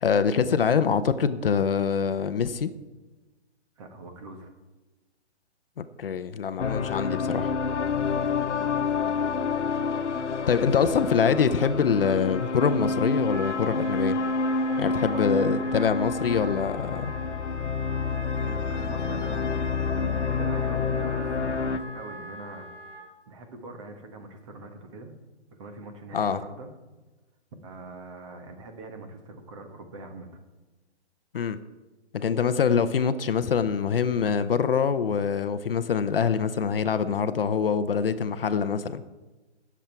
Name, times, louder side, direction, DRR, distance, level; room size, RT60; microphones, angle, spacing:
voice 1, 0.0-2.7 5.8-7.5 10.5-14.2 14.8-17.1 26.1-26.4 31.3-31.6 32.1-39.0, left 6 dB, 55° left, 12 dB, 0.8 m, -24 dB
voice 2, 3.8-4.5 7.9-8.2 14.8-15.8 18.4-19.7 20.2-23.0 23.3-25.1 25.5-26.7 27.6-30.3, right 2 dB, 25° right, 5 dB, 1.3 m, -42 dB
sound 1, 6.6-21.8, left 4 dB, 90° left, 1.2 m, -28 dB
Wind instrument woodwind instrument, 13.1-23.0, right 1 dB, 10° left, 2.5 m, -42 dB
17.5 x 7.4 x 4.5 m, 1.2 s
hypercardioid pair, 160°, 34 cm